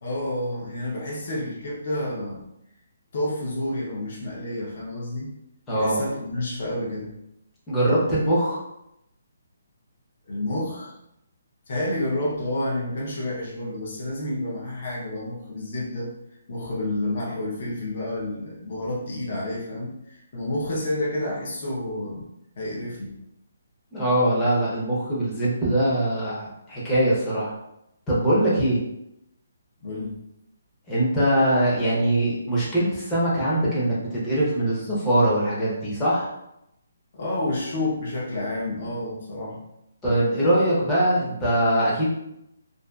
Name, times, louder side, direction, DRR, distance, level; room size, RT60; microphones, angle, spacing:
voice 1, 0.0-2.4 3.1-5.3 5.7-7.1 10.3-10.9 11.7-16.1 16.5-22.3 22.6-23.2 29.8-30.2 37.1-39.6, left 1 dB, 45° left, -4 dB, 0.7 m, -29 dB
voice 2, 5.7-6.0 7.7-8.6 23.9-27.5 28.1-28.8 30.9-36.3 40.0-42.1, right 1 dB, 10° left, -8 dB, 0.6 m, -22 dB
2.5 x 2.4 x 2.3 m, 0.83 s
hypercardioid pair, 170°, 0 cm